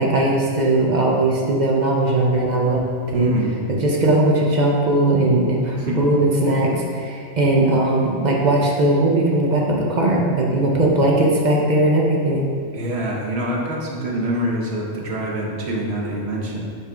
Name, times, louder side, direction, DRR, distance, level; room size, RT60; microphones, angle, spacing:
voice 1, 0.0-2.8 3.1-3.3 3.7-12.5, right 2 dB, 45° right, -2 dB, 0.8 m, -19 dB
voice 2, 3.1-3.7 5.8-6.0 12.7-16.6, right 1 dB, 75° right, -2 dB, 1.2 m, -25 dB
5.5 x 3.5 x 5.0 m, 2.4 s
omnidirectional pair, 1.1 m